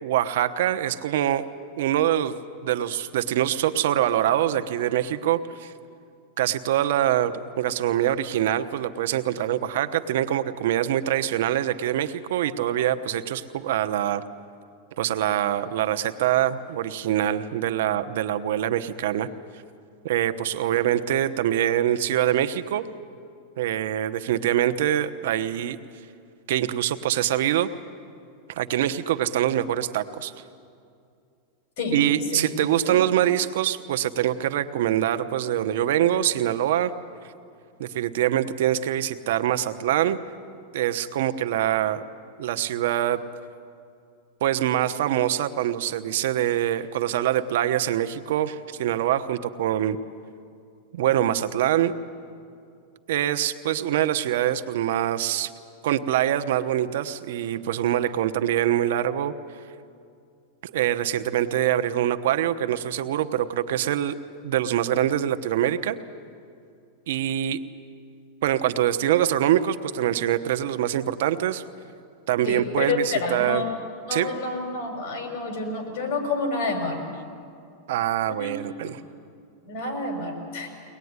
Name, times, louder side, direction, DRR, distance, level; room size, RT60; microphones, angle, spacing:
voice 1, 0.0-1.4 1.8-2.3 2.6-5.7 6.4-14.2 15.0-19.3 20.0-22.8 23.6-25.8 26.5-27.7 28.5-30.3 31.9-36.9 37.8-40.2 40.7-42.0 42.4-43.2 44.4-50.0 50.9-52.0 53.1-55.5 55.8-59.3 60.6-64.2 64.4-66.0 67.1-67.6 68.4-71.6 72.3-73.6 74.1-74.3 77.9-79.0, right 11 dB, 70° right, 10 dB, 1.0 m, -24 dB
voice 2, 72.5-73.7 74.1-77.0 78.3-78.5 79.6-80.7, left 3 dB, 50° left, 3 dB, 6.0 m, -28 dB
23.5 x 19.5 x 9.6 m, 2.4 s
supercardioid pair, 145°, 0 cm